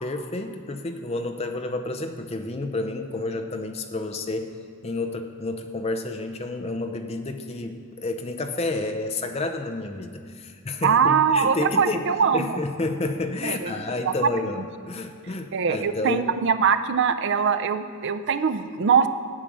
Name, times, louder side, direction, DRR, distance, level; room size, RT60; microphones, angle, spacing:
voice 1, 0.0-4.5 4.8-14.6 14.9-16.3, left 2 dB, 30° left, 6 dB, 0.6 m, -30 dB
voice 2, 10.8-12.5 13.4-13.7 14.1-14.2 15.5-19.1, right 6 dB, 55° right, 10 dB, 0.4 m, -22 dB
8.7 x 8.5 x 6.1 m, 2.1 s
head